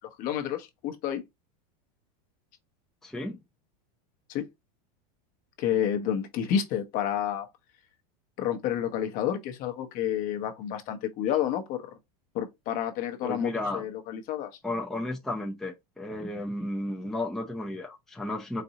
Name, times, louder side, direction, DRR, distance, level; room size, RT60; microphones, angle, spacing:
voice 1, 0.2-1.2 4.3-4.4 5.6-7.5 8.4-11.8 12.3-14.5, left 10 dB, 45° left, 0.8 m, -30 dB
voice 2, 3.0-3.4 13.2-13.8 14.6-18.6, left 1 dB, ahead, 0.6 m, -33 dB
4.1 x 2.6 x 2.8 m
supercardioid pair, 140°, 20 cm